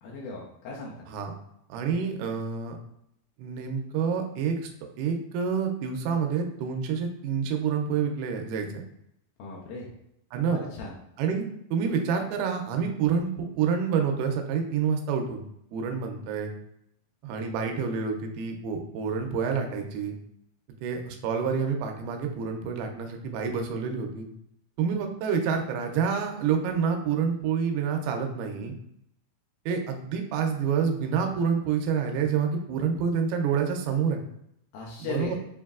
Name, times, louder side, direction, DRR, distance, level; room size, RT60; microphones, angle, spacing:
voice 1, 0.0-1.0 9.4-9.9 10.5-10.9 34.7-35.3, left 3 dB, 80° left, -3 dB, 2.1 m, -37 dB
voice 2, 1.7-2.8 3.4-4.6 5.0-8.7 10.3-10.6 11.2-15.4 15.7-16.5 17.2-20.1 20.8-24.3 24.8-28.7 29.7-34.2 35.1-35.3, right 6 dB, 85° right, 3 dB, 2.5 m, -28 dB
7.0 x 2.6 x 2.3 m, 0.76 s
omnidirectional pair, 4.5 m